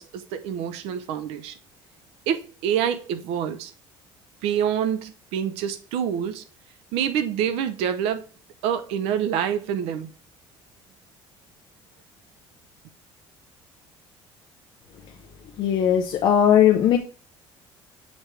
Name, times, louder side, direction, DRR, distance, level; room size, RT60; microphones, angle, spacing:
voice 1, 0.0-1.5 2.3-3.7 4.4-6.4 6.9-8.2 8.6-10.1, right 9 dB, 85° right, 0.8 m, -26 dB
voice 2, 15.6-17.0, left 9 dB, 50° left, 0.8 m, -18 dB
7.5 x 5.2 x 3.3 m
cardioid pair, 170°, 10 cm